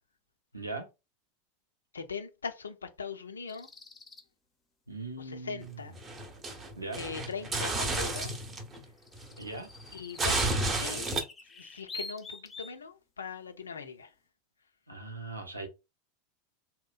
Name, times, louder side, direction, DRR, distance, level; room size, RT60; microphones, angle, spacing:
voice 1, 0.5-0.9 4.9-5.8 6.7-7.0 9.4-9.7 14.9-15.7, right 2 dB, 90° right, 0.6 m, -39 dB
voice 2, 1.9-3.7 5.2-6.0 7.0-8.3 9.9-10.5 10.8-11.1 11.4-14.1, left 5 dB, 80° left, 0.4 m, -40 dB
sound 1, 3.5-4.2 8.3-8.4 8.7-12.8, left 3 dB, 20° left, 0.5 m, -47 dB
sound 2, 5.7-8.8 9.1-11.2, right 2 dB, 25° right, 0.6 m, -31 dB
2.8 x 2.0 x 2.3 m
figure-of-eight pair, 85°, 0 cm